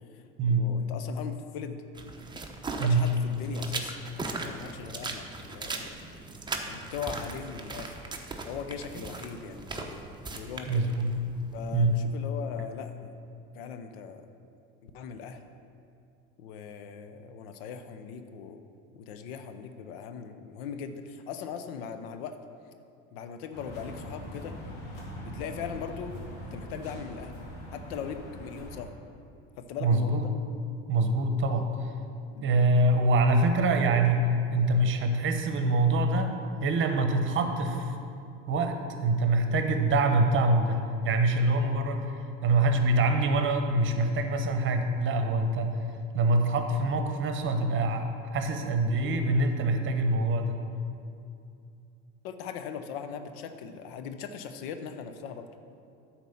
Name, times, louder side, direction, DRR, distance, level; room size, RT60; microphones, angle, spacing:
voice 1, 0.1-1.8 2.7-5.3 5.5-5.9 6.7-8.0 8.4-9.9 10.3-10.9 11.5-13.2 13.5-14.2 14.8-15.4 16.4-18.6 18.9-22.4 23.1-24.6 25.2-26.2 26.5-27.4 27.7-28.9 29.6-30.3 32.3-32.5 52.2-55.5, left 7 dB, 85° left, 8 dB, 0.7 m, -39 dB
sound 1, 1.9-11.9, right 3 dB, 15° right, 0.8 m, -39 dB
voice 2, 10.7-11.1 11.7-12.0 29.8-30.3 30.9-31.7 32.4-36.3 36.6-37.9 38.5-45.8 46.1-50.6, right 2 dB, 45° right, 6 dB, 1.0 m, -25 dB
sound 2, 23.5-28.8, equal, 65° left, 2.3 m, -42 dB
9.3 x 4.4 x 7.1 m, 2.5 s
supercardioid pair, 100°, 29 cm